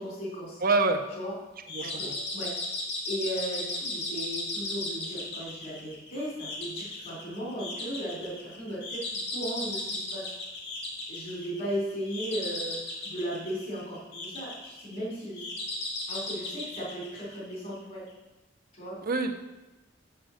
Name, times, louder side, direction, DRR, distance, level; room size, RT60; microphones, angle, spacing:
voice 1, 0.0-0.6 1.1-1.3 1.8-2.5 3.1-9.0 9.3-10.3 11.1-15.4 16.1-18.0 18.8-19.0, equal, 45° left, -6 dB, 3.8 m, -36 dB
voice 2, 0.6-1.0 1.7-2.2 19.1-19.4, right 3 dB, 50° right, 6 dB, 0.9 m, -26 dB
sound 1, 1.7-17.8, left 2 dB, 65° left, 2.3 m, -36 dB
7.8 x 7.7 x 6.4 m, 1.0 s
head